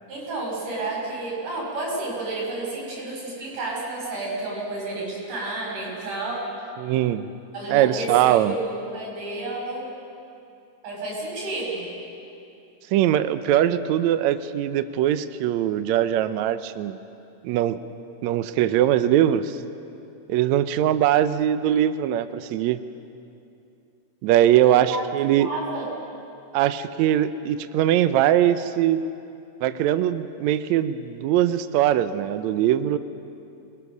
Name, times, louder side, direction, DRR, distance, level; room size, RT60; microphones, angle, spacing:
voice 1, 0.1-6.5 7.5-9.9 10.8-11.9 24.5-25.0 25.4-25.9, right 2 dB, 60° right, -3 dB, 7.2 m, -31 dB
voice 2, 6.8-7.3 7.7-8.6 12.9-17.0 17.4-17.8 18.2-19.6 20.3-22.8 24.2-25.5 26.5-29.0 29.6-33.0, right 11 dB, 85° right, 12 dB, 1.6 m, -21 dB
27.5 x 21.0 x 6.5 m, 2.7 s
omnidirectional pair, 4.0 m